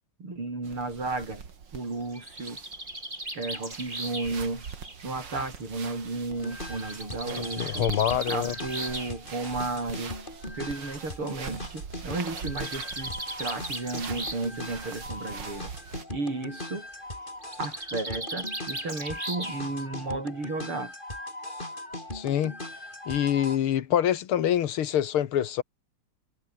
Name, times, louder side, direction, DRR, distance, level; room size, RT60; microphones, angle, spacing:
voice 1, 0.2-1.4 1.7-2.6 3.4-4.7 5.0-7.9 8.3-10.2 10.5-15.7 16.1-16.9 17.6-20.9, right 3 dB, 80° right, 7.6 m, -33 dB
sound 1, 0.6-16.0, right 6 dB, 55° right, 2.7 m, -43 dB
Bird, 1.9-5.7 6.8-9.1 10.2-10.3 10.7-10.8 11.0-11.1 12.1-14.6 14.9-15.3 17.4-19.8, right 1 dB, 20° right, 5.5 m, -38 dB
sound 2, 6.3-23.6, left 1 dB, 20° left, 5.8 m, -40 dB
voice 2, 7.4-8.5 22.1-22.5 23.1-25.6, left 10 dB, 80° left, 2.1 m, -26 dB
omnidirectional pair, 2.4 m